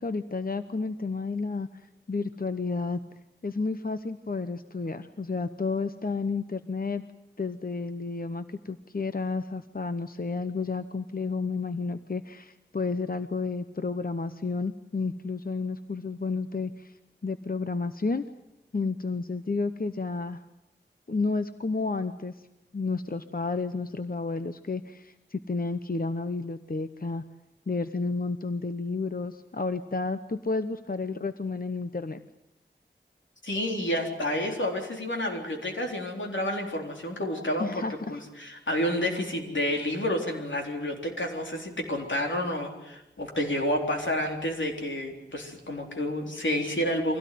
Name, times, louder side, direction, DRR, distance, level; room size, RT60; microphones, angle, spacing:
voice 1, 0.0-1.7 2.1-3.0 3.4-7.0 7.4-16.9 17.2-18.2 18.7-20.4 21.1-22.4 22.7-27.2 27.7-32.2 37.6-38.2, left 3 dB, 50° left, 10 dB, 0.9 m, -31 dB
voice 2, 33.4-37.8 38.1-47.2, left 1 dB, 85° left, 2 dB, 3.8 m, -30 dB
24.0 x 17.0 x 9.4 m, 0.91 s
wide cardioid pair, 45°, 19 cm